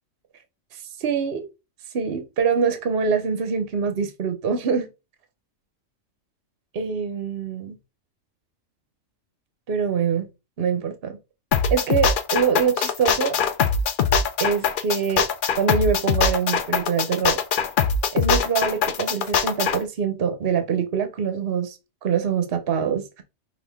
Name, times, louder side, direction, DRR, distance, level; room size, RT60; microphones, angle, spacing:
voice 1, 1.0-1.4 1.9-4.9 6.7-7.8 9.7-10.3 10.6-11.2 11.7-13.4 14.4-15.3 15.6-17.4 18.1-23.2, right 6 dB, 50° right, 0.9 m, -24 dB
sound 1, 11.5-19.8, left 6 dB, 60° left, 0.5 m, -22 dB
5.8 x 2.6 x 3.5 m
omnidirectional pair, 1.4 m